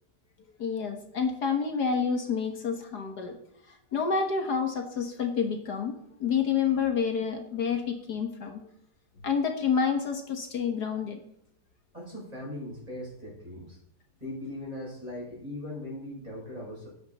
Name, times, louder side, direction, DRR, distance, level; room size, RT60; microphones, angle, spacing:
voice 1, 0.6-3.4 3.7-5.9 6.2-8.6 9.2-11.2, left 6 dB, 65° left, 4 dB, 1.8 m, -28 dB
voice 2, 11.9-13.8 14.2-16.9, left 1 dB, 20° right, -4 dB, 6.3 m, -39 dB
13.5 x 9.5 x 4.1 m, 0.71 s
omnidirectional pair, 1.9 m